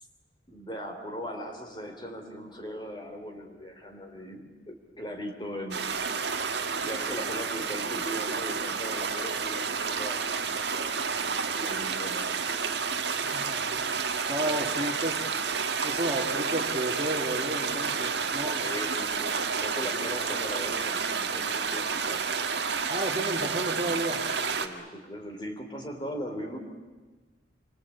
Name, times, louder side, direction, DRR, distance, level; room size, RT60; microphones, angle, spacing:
voice 1, 0.5-5.8 6.8-11.0 11.5-12.4 18.6-22.2 24.6-26.6, equal, 25° left, 4 dB, 3.3 m, -39 dB
sound 1, 5.7-24.7, right 5 dB, 60° right, 1.7 m, -30 dB
voice 2, 13.2-13.7 14.3-15.3 15.8-18.7 22.9-24.2, right 1 dB, 30° right, 2 dB, 2.5 m, -32 dB
27.5 x 23.5 x 8.6 m, 1.3 s
head